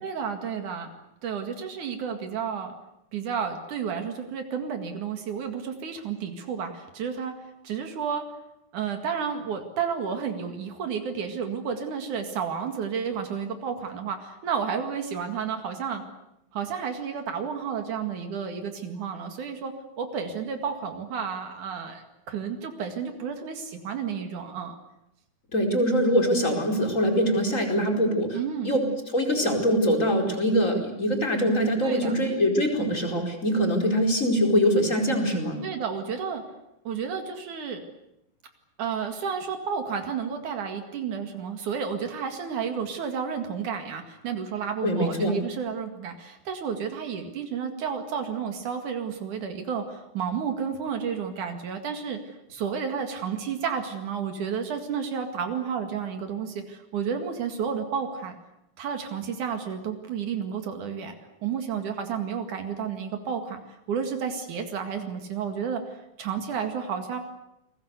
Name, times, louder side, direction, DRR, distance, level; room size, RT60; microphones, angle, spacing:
voice 1, 0.0-0.9 1.2-2.7 3.1-7.3 7.6-8.2 8.7-16.0 16.5-19.7 20.0-24.8 28.3-28.8 31.8-32.1 35.6-36.4 36.9-37.8 38.8-58.4 58.8-61.1 61.4-63.6 63.9-67.2, right 7 dB, 75° right, 5 dB, 3.5 m, -31 dB
voice 2, 25.5-28.4 28.6-28.8 29.1-35.6 44.8-45.4, equal, 25° left, 3 dB, 4.9 m, -23 dB
29.0 x 21.5 x 8.2 m, 0.86 s
omnidirectional pair, 3.5 m